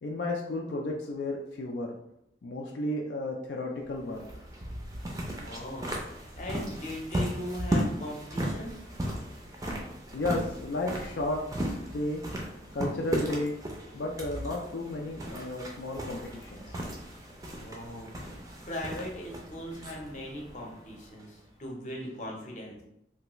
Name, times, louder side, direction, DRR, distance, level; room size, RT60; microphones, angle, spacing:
voice 1, 0.0-1.9 2.4-4.2 10.1-12.2 12.7-13.6 13.9-16.8, left 1 dB, 75° left, 0 dB, 0.4 m, -33 dB
sound 1, 3.8-21.5, right 1 dB, 20° right, 0.4 m, -36 dB
voice 2, 5.4-8.8 17.6-22.8, left 1 dB, 40° left, -2 dB, 0.7 m, -39 dB
3.2 x 2.3 x 2.9 m, 0.80 s
head